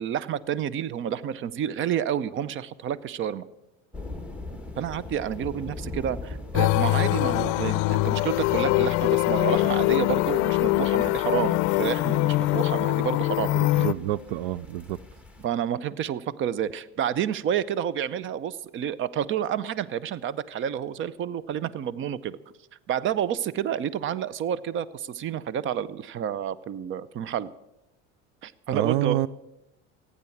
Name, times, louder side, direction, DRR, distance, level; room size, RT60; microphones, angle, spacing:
voice 1, 0.0-3.4 4.8-13.9 15.4-22.4 22.9-27.5 28.4-29.3, right 9 dB, 40° right, 0.6 m, -29 dB
sound 1, 3.9-15.5, left 2 dB, 5° right, 1.3 m, -42 dB
sound 2, 6.5-13.9, left 19 dB, 65° left, 0.5 m, -23 dB
voice 2, 13.4-15.0 28.7-29.3, right 14 dB, 75° right, 0.5 m, -28 dB
15.5 x 9.6 x 7.1 m
supercardioid pair, 120°, 32 cm